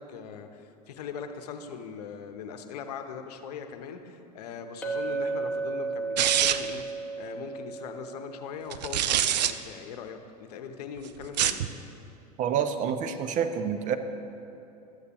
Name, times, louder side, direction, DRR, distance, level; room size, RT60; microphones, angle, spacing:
voice 1, 0.0-6.8 7.2-11.6, left 6 dB, 70° left, 7 dB, 0.8 m, -40 dB
Chink clink, 4.8-9.3, right 3 dB, 5° left, 1.0 m, -34 dB
sound 1, 6.2-6.8 8.7-9.5 11.2-11.7, right 11 dB, 80° right, 0.4 m, -24 dB
voice 2, 12.4-14.0, right 8 dB, 35° right, 8 dB, 0.6 m, -28 dB
13.0 x 8.0 x 2.9 m, 2.7 s
hypercardioid pair, 95°, 21 cm